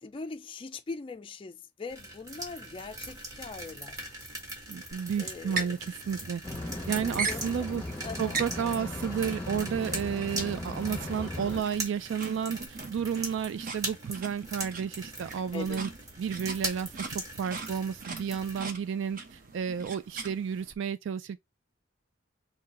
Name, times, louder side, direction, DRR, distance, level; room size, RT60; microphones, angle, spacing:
voice 1, 0.0-4.1 5.2-5.8 7.3-7.7 8.0-8.4 15.5-15.8, left 4 dB, 25° left, 0.3 m, -41 dB
sound 1, 1.9-18.7, right 1 dB, 20° right, 1.1 m, -41 dB
voice 2, 4.7-6.4 6.9-7.8 8.2-15.9 16.2-21.4, right 7 dB, 70° right, 0.3 m, -32 dB
sound 2, 4.9-20.7, right 4 dB, 45° right, 0.8 m, -41 dB
sound 3, 6.4-11.6, left 1 dB, 10° left, 0.9 m, -38 dB
3.9 x 2.7 x 4.1 m
head